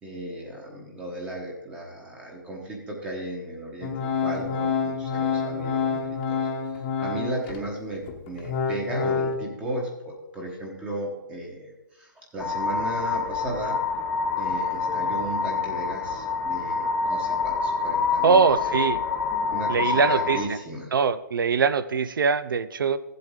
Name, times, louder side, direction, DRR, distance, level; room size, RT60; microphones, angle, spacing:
voice 1, 0.0-6.0 6.3-13.8 14.4-18.4 18.7-18.8 19.5-20.9, right 1 dB, 10° right, 0 dB, 1.1 m, -35 dB
Organ, 3.8-7.6 8.1-9.4, left 6 dB, 25° left, 1.0 m, -27 dB
sound 1, 12.4-20.4, left 4 dB, 5° left, 0.7 m, -27 dB
voice 2, 18.2-19.0 19.7-20.4 20.9-23.0, right 5 dB, 85° right, 14 dB, 0.6 m, -22 dB
14.5 x 7.7 x 3.7 m, 1.1 s
hypercardioid pair, 160°, 11 cm